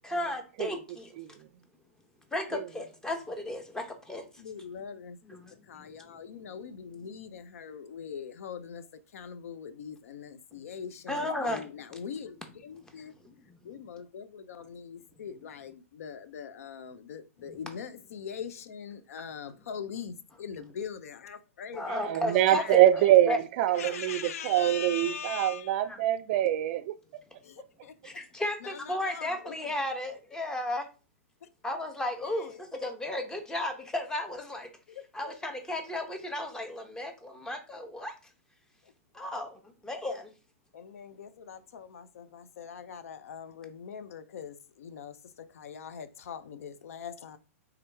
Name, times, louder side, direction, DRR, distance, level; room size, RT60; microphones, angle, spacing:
voice 1, 0.0-1.1 2.3-4.3 5.3-5.9 11.1-11.7 13.0-13.4 21.7-22.6 23.3-23.4 25.8-26.0 28.0-30.9 31.6-34.7 35.1-38.1 39.1-40.3, left 1 dB, 5° left, 0.8 m, -34 dB
voice 2, 4.4-5.2 5.7-8.8 9.1-13.1 13.6-21.9 22.3-22.8 23.7-25.8 27.4-27.9 28.6-29.6 32.2-32.6 34.9-35.0 40.7-47.4, left 7 dB, 70° left, 0.5 m, -42 dB
voice 3, 21.9-26.9, right 13 dB, 50° right, 0.3 m, -24 dB
3.6 x 2.9 x 3.4 m
hypercardioid pair, 120°, 8 cm